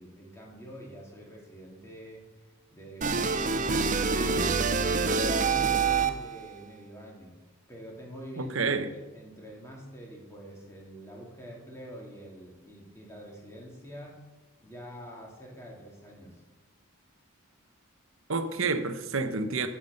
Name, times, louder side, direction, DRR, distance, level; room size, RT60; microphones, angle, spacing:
voice 1, 0.0-2.3 2.7-4.6 5.3-7.4 7.7-14.2 14.6-16.4, equal, 10° left, -2 dB, 2.4 m, -46 dB
sound 1, 3.0-6.4, right 4 dB, 35° right, 0.6 m, -26 dB
voice 2, 8.4-8.9 18.3-19.7, right 4 dB, 60° right, 8 dB, 0.9 m, -29 dB
9.5 x 7.4 x 6.4 m, 1.2 s
head